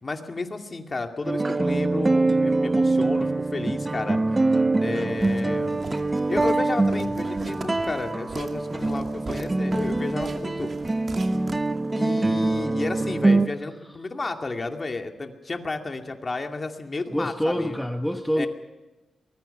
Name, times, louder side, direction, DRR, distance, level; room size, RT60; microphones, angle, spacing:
voice 1, 0.0-4.2 4.8-5.8 6.3-10.7 12.0-17.8 18.4-18.5, left 3 dB, 30° left, 4 dB, 2.4 m, -32 dB
sound 1, 1.2-13.5, right 2 dB, 20° right, 0.6 m, -24 dB
Walk footsteps, 5.2-12.1, right 3 dB, 40° right, 2.4 m, -40 dB
voice 2, 17.1-18.5, equal, ahead, 5 dB, 1.1 m, -26 dB
24.0 x 21.5 x 5.8 m, 1.1 s
wide cardioid pair, 120°, 0 cm